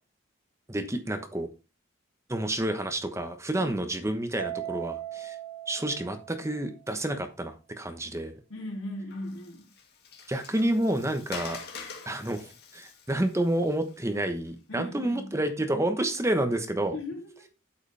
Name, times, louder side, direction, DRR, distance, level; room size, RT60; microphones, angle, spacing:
voice 1, 0.7-1.5 2.3-5.4 5.7-8.3 10.3-11.6 12.1-16.9, right 1 dB, 15° right, 1.0 m, -29 dB
Mallet percussion, 4.4-6.8, right 11 dB, 70° right, 0.8 m, -38 dB
voice 2, 8.5-9.7 14.7-15.3 16.9-17.4, left 1 dB, 85° left, 3.3 m, -38 dB
Water, 9.1-14.5, left 5 dB, 55° left, 2.2 m, -45 dB
8.4 x 8.1 x 3.4 m
head